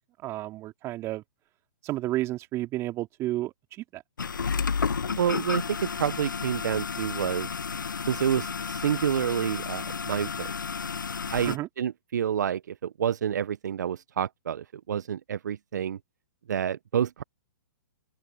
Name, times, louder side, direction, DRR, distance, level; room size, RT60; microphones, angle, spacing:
voice 1, 0.2-1.2 1.8-4.0 11.5-11.7, right 16 dB, 25° right, 2.3 m, -31 dB
sound 1, 4.2-11.6, left 5 dB, 80° left, 1.0 m, -32 dB
voice 2, 5.2-7.5 8.1-10.5 11.3-16.0 16.5-17.2, right 9 dB, 65° right, 0.9 m, -28 dB
open air
hypercardioid pair, 125°, 10 cm